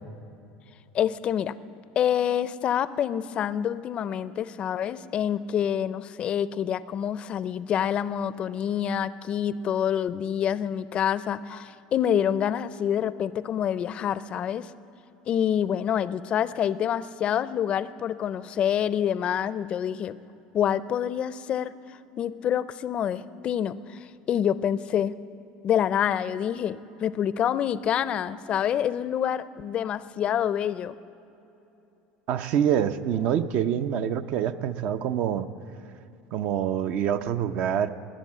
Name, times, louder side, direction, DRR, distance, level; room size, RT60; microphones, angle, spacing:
voice 1, 0.9-1.5 2.0-14.7 15.3-20.2 20.5-25.2 25.6-31.0, left 9 dB, 40° left, 16 dB, 0.4 m, -27 dB
voice 2, 32.3-35.5 36.3-37.9, right 9 dB, 60° right, 11 dB, 0.6 m, -26 dB
20.5 x 7.7 x 7.4 m, 2.9 s
supercardioid pair, 115°, 3 cm